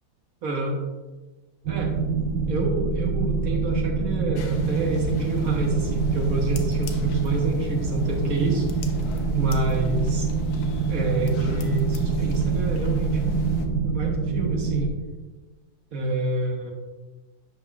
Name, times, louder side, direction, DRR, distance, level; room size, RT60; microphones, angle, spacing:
voice 1, 0.4-0.8 1.7-1.9 2.5-8.8 9.3-10.3 10.9-14.9 15.9-16.7, right 2 dB, 60° right, 0 dB, 1.4 m, -28 dB
sound 1, 1.6-14.9, right 5 dB, 80° right, 1.2 m, -25 dB
sound 2, 4.3-13.7, left 2 dB, 75° left, 1.2 m, -36 dB
8.4 x 5.9 x 2.3 m, 1.2 s
omnidirectional pair, 1.7 m